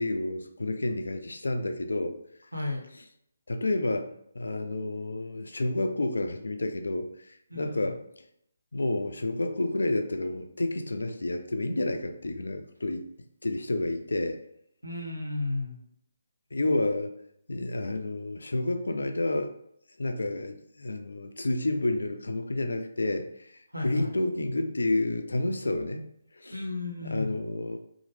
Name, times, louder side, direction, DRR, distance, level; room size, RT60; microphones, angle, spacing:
voice 1, 0.0-2.2 3.5-8.0 8.7-13.1 13.4-14.4 16.5-17.1 17.5-19.5 20.0-26.1 26.3-26.6 27.0-27.8, left 2 dB, 65° left, 6 dB, 0.4 m, -30 dB
voice 2, 2.5-2.8 7.5-7.9 14.8-15.8 23.7-24.1 26.5-27.4, left 2 dB, 85° right, 0 dB, 0.8 m, -33 dB
2.9 x 2.0 x 3.2 m, 0.72 s
figure-of-eight pair, 145°, 0 cm